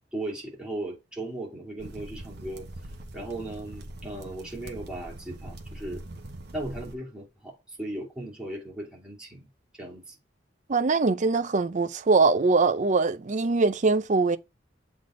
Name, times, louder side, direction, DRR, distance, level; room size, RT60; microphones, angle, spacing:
voice 1, 0.1-2.7 3.1-6.0 6.5-9.4 9.8-10.1, right 1 dB, 5° right, 2.7 m, -37 dB
sound 1, 1.8-7.0, right 1 dB, 60° right, 1.0 m, -42 dB
voice 2, 10.7-14.4, right 3 dB, 40° right, 0.5 m, -22 dB
7.6 x 3.6 x 3.8 m
head